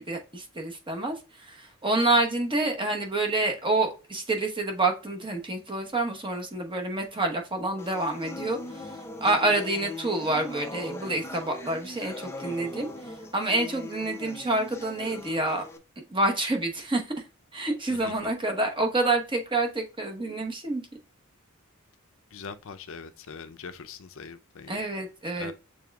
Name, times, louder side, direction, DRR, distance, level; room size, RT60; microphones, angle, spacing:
voice 1, 0.0-12.9 13.3-15.7 16.0-17.1 17.5-20.8 24.7-25.5, right 2 dB, 25° right, 1.0 m, -28 dB
sound 1, 7.8-15.8, left 2 dB, 10° left, 0.5 m, -40 dB
voice 2, 22.3-24.8 25.4-25.5, left 5 dB, 65° left, 0.6 m, -42 dB
6.8 x 3.4 x 2.3 m
head